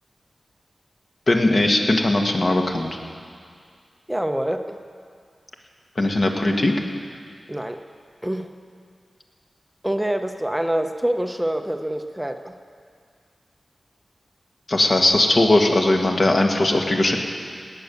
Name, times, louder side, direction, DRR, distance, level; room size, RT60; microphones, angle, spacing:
voice 1, 1.3-3.0 6.0-6.7 14.7-17.2, left 2 dB, 45° left, 2 dB, 1.6 m, -19 dB
voice 2, 4.1-4.8 7.5-7.8 8.2-8.5 9.8-12.6, right 1 dB, 10° right, 6 dB, 0.7 m, -26 dB
19.0 x 9.4 x 7.0 m, 2.2 s
wide cardioid pair, 85°, 0 cm